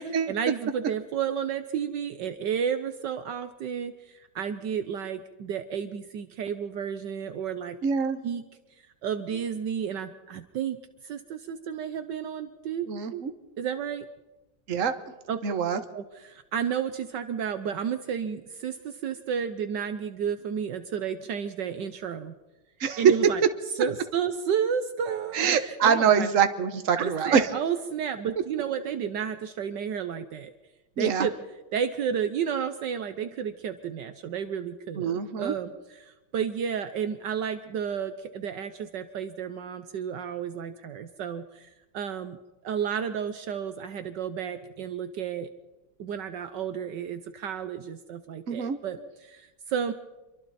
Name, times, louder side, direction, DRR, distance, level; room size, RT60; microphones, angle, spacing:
voice 1, 0.3-7.8 8.2-8.4 9.0-10.8 11.0-12.9 13.1-13.2 13.6-14.1 15.3-15.4 15.9-22.4 23.0-23.4 23.7-26.3 27.0-30.5 31.0-31.3 31.7-42.4 42.6-45.5 46.0-49.9, right 8 dB, 70° right, 9 dB, 1.5 m, -32 dB
voice 2, 7.8-8.2 12.9-13.3 14.7-14.9 15.4-15.8 22.8-23.0 25.3-27.5 31.0-31.3 35.0-35.5 48.5-48.8, right 7 dB, 45° right, 8 dB, 1.5 m, -25 dB
26.5 x 23.5 x 4.2 m, 1.1 s
omnidirectional pair, 2.0 m